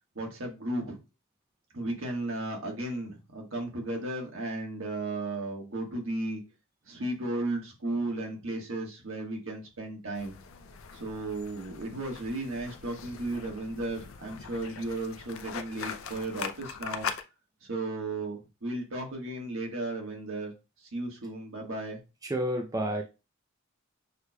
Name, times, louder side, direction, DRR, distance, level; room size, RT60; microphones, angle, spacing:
voice 1, 0.1-1.0 1.7-6.4 6.9-10.3 10.9-17.1 17.6-20.5 20.8-22.0, right 2 dB, 70° right, 1 dB, 1.4 m, -35 dB
sound 1, 10.1-17.2, left 6 dB, 75° left, 0.5 m, -41 dB
voice 2, 22.2-23.0, right 1 dB, 15° right, 3 dB, 0.5 m, -30 dB
6.5 x 3.2 x 2.2 m, 0.28 s
head